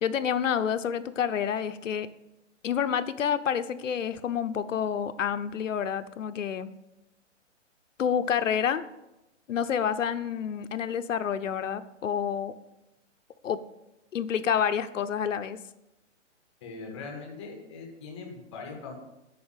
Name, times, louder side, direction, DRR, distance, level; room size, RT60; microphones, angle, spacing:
voice 1, 0.0-2.1 2.6-6.7 8.0-8.8 9.5-12.5 13.4-13.6 14.1-15.6, left 8 dB, 75° left, 11 dB, 0.8 m, -28 dB
voice 2, 16.6-18.9, left 4 dB, 5° left, 0 dB, 0.7 m, -41 dB
8.5 x 5.6 x 7.3 m, 0.93 s
hypercardioid pair, 180°, 38 cm